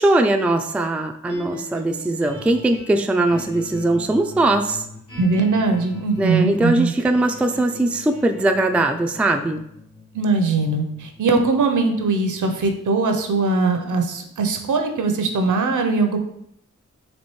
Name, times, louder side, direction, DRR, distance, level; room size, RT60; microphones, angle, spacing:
voice 1, 0.0-4.8 6.2-9.6, right 2 dB, 5° right, 5 dB, 0.3 m, -20 dB
sound 1, 1.3-13.6, left 2 dB, 70° left, 1.4 m, -41 dB
voice 2, 5.2-6.9 10.1-16.2, right 3 dB, 70° right, 5 dB, 0.6 m, -20 dB
4.3 x 2.7 x 3.1 m, 0.74 s
cardioid pair, 40°, 32 cm